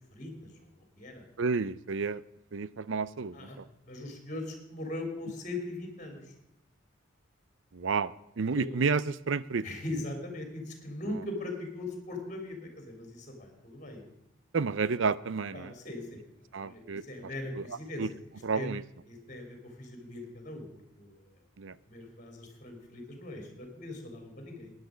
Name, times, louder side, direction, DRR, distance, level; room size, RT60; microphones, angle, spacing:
voice 1, 0.1-1.2 3.3-3.6 3.9-6.3 8.5-8.7 9.6-14.0 15.5-16.2 16.6-18.0 18.5-18.7 19.1-20.7 21.0-21.3 21.9-24.7, left 2 dB, 35° left, 4 dB, 3.3 m, -40 dB
voice 2, 1.4-2.2 2.5-3.6 7.7-9.7 11.1-11.2 14.5-15.7 16.5-17.0 17.5-18.1 18.4-18.8 21.6-21.8, right 5 dB, 65° right, 18 dB, 0.5 m, -31 dB
15.5 x 10.5 x 5.1 m, 0.85 s
head